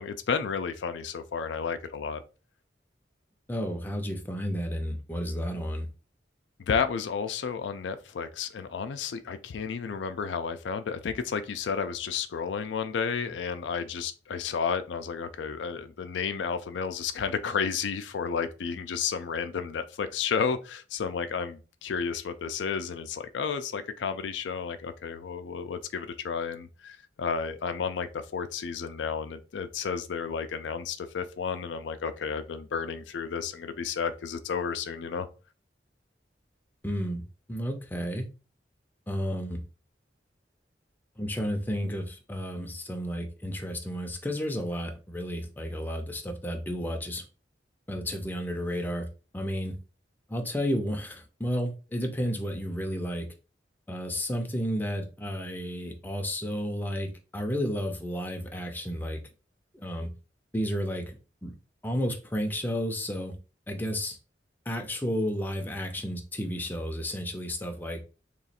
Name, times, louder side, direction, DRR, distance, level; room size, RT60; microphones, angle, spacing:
voice 1, 0.0-2.2 6.7-35.3, left 6 dB, 90° left, 0.4 m, -32 dB
voice 2, 3.5-5.9 36.8-37.2 37.5-38.3 39.1-39.6 41.2-47.2 47.9-49.1 49.3-49.8 50.3-53.3 53.9-59.2 59.7-60.1 60.5-61.5 61.8-63.4 63.7-64.2 64.7-68.0, equal, 10° left, 0.5 m, -32 dB
2.9 x 2.4 x 4.1 m
head